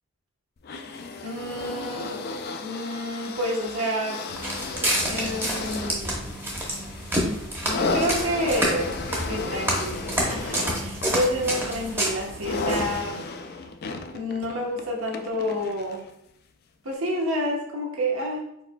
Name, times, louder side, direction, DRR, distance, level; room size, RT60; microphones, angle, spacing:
sound 1, 0.6-16.1 16.9-17.0, left 3 dB, 45° left, 0.3 m, -34 dB
voice 1, 1.2-2.2 2.6-4.2 5.0-6.3 7.2-9.0 9.3-13.3 14.1-16.1 16.8-18.4, equal, 80° right, -1 dB, 1.1 m, -29 dB
Walk footsteps, 4.3-13.0, equal, 10° right, 0.8 m, -29 dB
4.7 x 4.6 x 2.2 m, 0.77 s
head